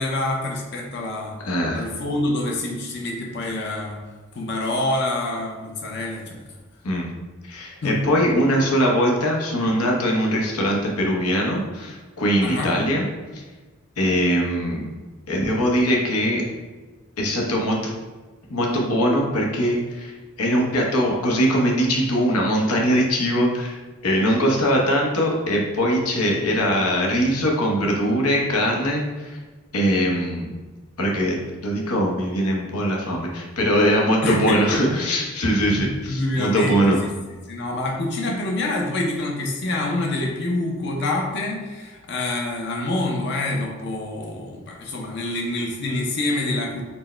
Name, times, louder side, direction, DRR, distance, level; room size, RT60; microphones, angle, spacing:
voice 1, 0.0-1.4 1.7-4.1 4.3-6.4 7.8-8.0 12.4-12.8 34.2-34.8 35.6-37.0 37.5-46.8, left 2 dB, 50° left, -1 dB, 0.5 m, -26 dB
voice 2, 1.4-1.9 6.8-7.1 7.5-13.1 13.3-13.4 14.0-14.8 15.3-16.4 17.2-17.8 18.5-29.4 29.7-30.5 31.0-31.4 31.6-37.0, equal, 90° left, -1 dB, 0.8 m, -21 dB
4.4 x 2.1 x 4.3 m, 1.3 s
head